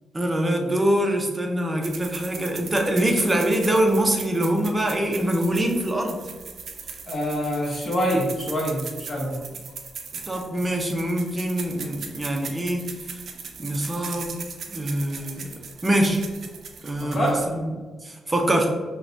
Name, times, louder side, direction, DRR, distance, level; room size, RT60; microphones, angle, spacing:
voice 1, 0.1-6.2 10.3-12.9 13.6-14.3 14.7-15.5 15.8-16.2 16.8-17.3 18.0-18.7, right 1 dB, 20° right, 2 dB, 0.6 m, -24 dB
sound 1, 1.8-17.6, right 5 dB, 60° right, 0.5 m, -39 dB
voice 2, 7.1-9.4 17.0-17.5, equal, 25° left, -3 dB, 1.0 m, -25 dB
5.7 x 2.2 x 2.6 m, 1.3 s
cardioid pair, 105°, 0 cm